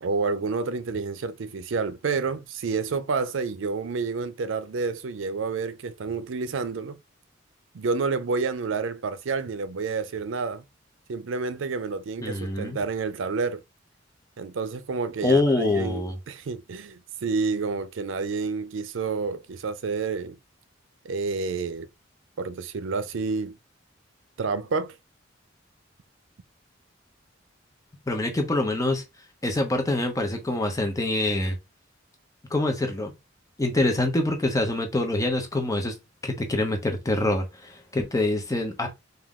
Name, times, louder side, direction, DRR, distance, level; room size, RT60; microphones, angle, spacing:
voice 1, 0.0-7.0 7.7-10.6 11.1-13.6 14.4-20.4 21.0-21.9 22.4-23.6 24.4-25.0, right 4 dB, 85° right, 0.5 m, -29 dB
voice 2, 12.2-12.8 15.2-16.1 28.1-29.0 29.4-31.6 32.5-33.1 33.6-36.0 36.2-38.9, left 2 dB, 20° left, 0.7 m, -25 dB
3.7 x 2.6 x 3.6 m
head